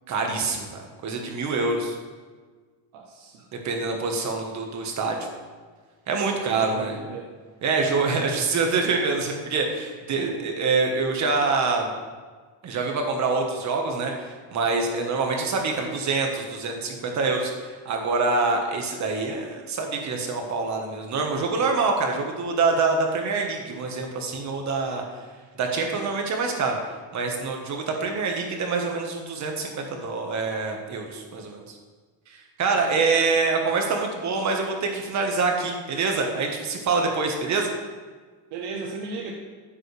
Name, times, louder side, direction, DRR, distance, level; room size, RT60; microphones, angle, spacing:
voice 1, 0.1-2.0 3.5-5.3 6.1-7.0 7.6-11.9 12.6-17.5 17.8-25.0 25.6-26.8 27.1-31.8 32.3-37.7, right 4 dB, 35° right, 2 dB, 1.5 m, -25 dB
voice 2, 2.9-3.5 6.3-7.3 7.9-8.4 10.2-10.5 38.5-39.3, right 4 dB, 75° right, 0 dB, 1.2 m, -36 dB
14.5 x 7.7 x 3.4 m, 1.5 s
cardioid pair, 175°, 47 cm